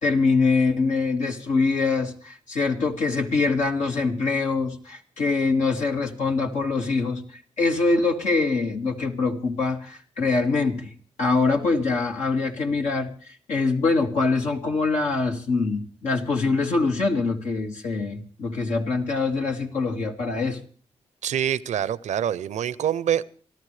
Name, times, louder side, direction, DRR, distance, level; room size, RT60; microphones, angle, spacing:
voice 1, 0.0-7.2 7.6-10.9 11.2-20.6, left 3 dB, 85° left, 2 dB, 2.1 m, -24 dB
voice 2, 21.2-23.2, right 10 dB, 80° right, 19 dB, 0.6 m, -25 dB
27.0 x 13.0 x 3.3 m, 0.42 s
cardioid pair, 50°, 12 cm